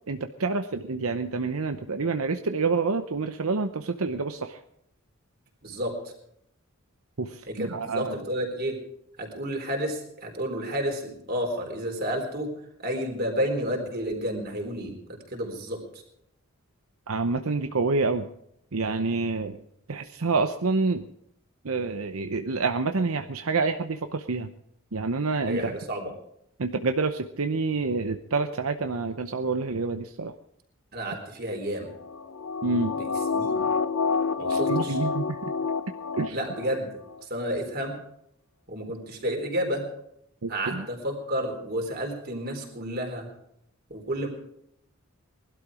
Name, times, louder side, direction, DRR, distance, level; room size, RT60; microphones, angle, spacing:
voice 1, 0.1-4.6 7.2-8.2 17.1-18.3 18.7-19.6 19.9-21.0 21.6-24.5 24.9-25.8 26.6-30.3 32.6-32.9 34.5-35.2 36.1-36.4 40.4-40.8, right 3 dB, 80° right, 7 dB, 0.8 m, -27 dB
voice 2, 5.6-6.1 7.5-8.8 9.2-12.5 12.8-16.0 25.5-26.1 30.9-31.9 33.0-33.7 34.4-35.0 36.3-36.9 37.2-37.9 38.7-39.8 40.5-43.3 43.9-44.3, equal, 45° right, 2 dB, 3.9 m, -31 dB
sound 1, 32.0-36.8 37.1-37.2, left 5 dB, 85° left, 0.8 m, -28 dB
19.5 x 12.5 x 4.9 m, 0.75 s
head